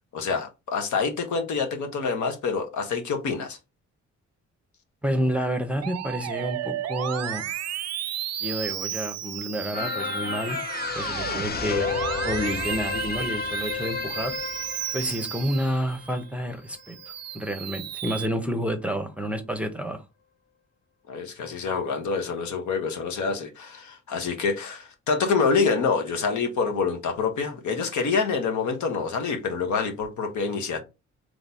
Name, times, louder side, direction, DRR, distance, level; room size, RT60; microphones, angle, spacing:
voice 1, 0.1-3.6 21.1-30.8, left 5 dB, 80° left, 1.2 m, -26 dB
voice 2, 5.0-7.5 8.4-10.6 10.9-11.9 12.2-14.3 14.9-17.0 17.3-20.0, equal, 5° right, 0.7 m, -29 dB
Musical instrument, 5.8-16.2 16.7-18.3, right 12 dB, 60° right, 0.5 m, -34 dB
sound 1, 9.7-16.4 16.8-16.9, left 5 dB, 35° left, 0.7 m, -31 dB
3.9 x 3.3 x 4.1 m
cardioid pair, 115°, 29 cm